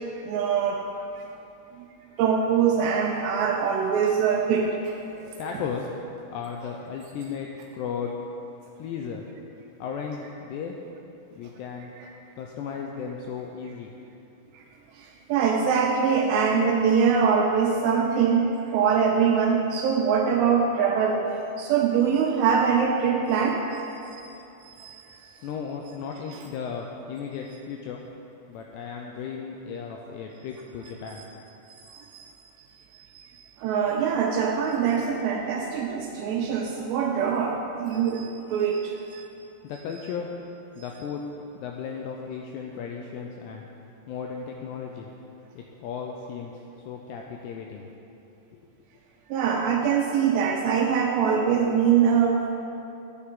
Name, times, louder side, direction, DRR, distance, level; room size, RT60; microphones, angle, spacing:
voice 1, 0.2-0.8 2.2-5.0 12.0-12.1 15.3-21.2 21.6-23.6 24.1-24.2 24.7-25.0 26.3-26.4 31.2-31.3 31.8-32.3 33.1-39.2 49.3-52.5, right 6 dB, 80° right, 1 dB, 2.6 m, -23 dB
voice 2, 5.4-5.9 6.3-7.5 7.7-8.1 8.8-9.3 9.8-10.8 11.4-11.9 12.4-14.0 24.8-24.9 25.4-28.0 28.5-31.3 39.6-40.3 40.8-41.2 41.5-43.6 44.1-45.1 45.6-46.5 46.9-47.9, left 6 dB, 85° left, 1 dB, 2.4 m, -35 dB
13.0 x 8.9 x 3.7 m, 2.8 s
omnidirectional pair, 5.4 m